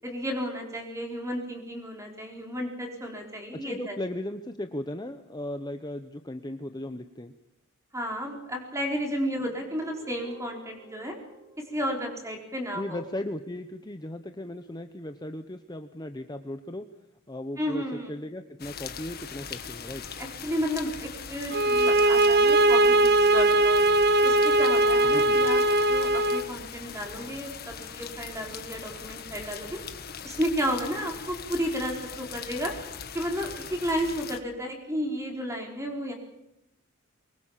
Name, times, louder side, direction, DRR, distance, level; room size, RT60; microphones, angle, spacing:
voice 1, 0.0-4.0 7.9-11.2 11.6-13.0 17.6-18.2 20.2-23.8 24.2-25.6 25.9-29.8 30.2-32.7 33.1-36.1, equal, 15° right, 2 dB, 4.6 m, -32 dB
voice 2, 3.5-7.3 12.7-16.8 17.3-17.8 18.1-20.0 25.1-25.5, left 1 dB, 20° left, 8 dB, 0.9 m, -36 dB
Guitar, 9.4-12.8, right 1 dB, 75° right, 3.5 m, -50 dB
sound 1, 18.6-34.4, left 7 dB, 45° left, 1.6 m, -41 dB
sound 2, 21.5-26.5, right 2 dB, 45° right, 0.8 m, -20 dB
24.0 x 21.5 x 7.4 m, 0.87 s
head